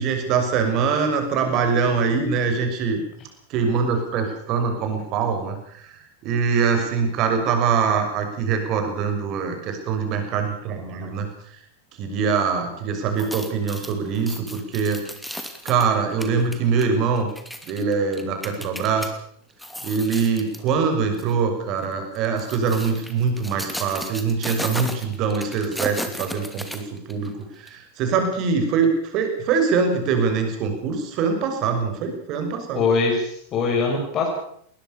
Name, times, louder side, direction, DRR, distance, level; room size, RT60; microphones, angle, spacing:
voice 1, 0.0-3.0 3.5-5.8 6.2-11.3 12.0-15.0 15.6-17.3 17.7-19.1 19.8-26.8 27.1-27.3 27.7-32.8, right 5 dB, 40° right, 5 dB, 6.2 m, -23 dB
sound 1, 13.1-19.1 19.5-20.7 21.1-21.3 22.1-27.3 27.7-27.8, equal, ahead, 2.7 m, -35 dB
voice 2, 32.7-34.3, left 4 dB, 30° left, 1 dB, 5.9 m, -22 dB
21.0 x 20.0 x 7.0 m, 0.64 s
figure-of-eight pair, 90°, 0 cm